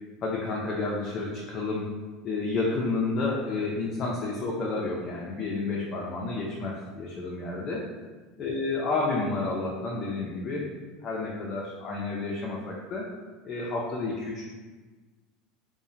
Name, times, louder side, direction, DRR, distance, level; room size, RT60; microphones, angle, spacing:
voice 1, 0.2-1.9 2.2-7.8 8.4-10.7 11.0-13.1 13.4-14.5, left 3 dB, 40° left, -4 dB, 0.4 m, -30 dB
2.7 x 2.0 x 2.5 m, 1.3 s
supercardioid pair, 120°, 0 cm